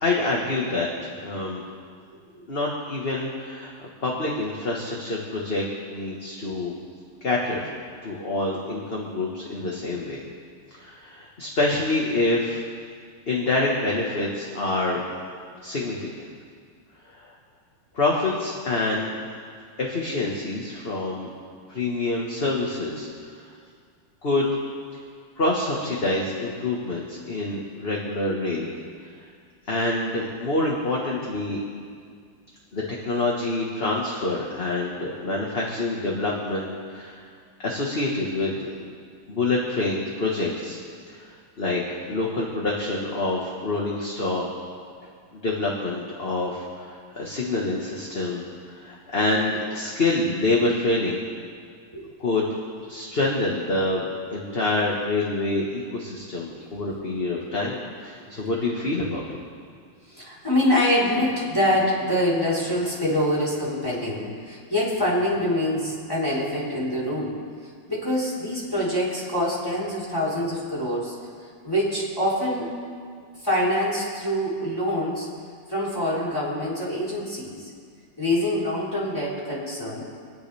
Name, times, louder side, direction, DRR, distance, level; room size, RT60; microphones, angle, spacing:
voice 1, 0.0-1.6 2.5-5.6 5.9-6.7 7.2-7.7 8.0-10.2 10.7-12.6 13.3-15.0 15.6-16.2 17.1-17.3 17.9-19.1 19.8-21.3 21.7-23.4 24.2-24.6 25.4-28.7 29.7-31.6 32.7-37.3 37.6-38.5 38.8-38.9 39.3-40.8 41.1-44.4 45.0-51.2 52.2-59.2, left 2 dB, 30° left, -3 dB, 1.5 m, -26 dB
voice 2, 60.1-67.3 67.9-71.1 71.6-72.7 73.4-75.3 75.7-77.6 78.2-80.0, left 1 dB, 10° left, -8 dB, 4.0 m, -25 dB
28.5 x 10.0 x 3.5 m, 2.1 s
omnidirectional pair, 2.3 m